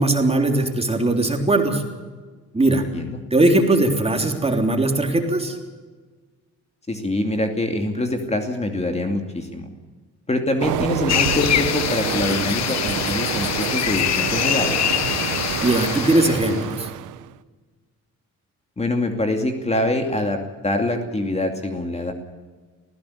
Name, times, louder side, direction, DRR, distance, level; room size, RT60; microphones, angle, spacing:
voice 1, 0.0-1.8 2.5-2.8 3.3-5.6 15.6-16.9, right 2 dB, 20° right, 4 dB, 3.5 m, -19 dB
voice 2, 2.7-3.2 6.9-9.7 10.3-14.9 18.8-22.1, left 1 dB, 20° left, 5 dB, 2.6 m, -25 dB
Train, 10.6-17.3, right 14 dB, 90° right, 0.8 m, -28 dB
sound 1, 11.1-16.6, left 10 dB, 60° left, 1.1 m, -24 dB
20.0 x 16.0 x 8.6 m, 1.4 s
cardioid pair, 90°, 30 cm